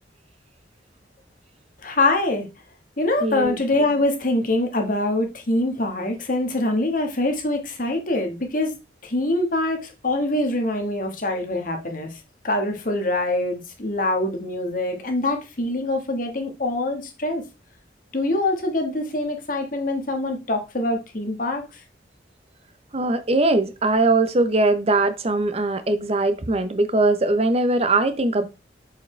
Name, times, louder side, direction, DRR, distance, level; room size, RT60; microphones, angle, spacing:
voice 1, 1.8-2.5 3.0-8.7 9.0-9.8 10.0-12.1 12.4-17.4 18.1-21.6, left 2 dB, 50° left, 1.5 m, -24 dB
voice 2, 3.2-3.6 22.9-28.5, right 2 dB, 35° right, 0.7 m, -21 dB
6.8 x 5.0 x 3.3 m
head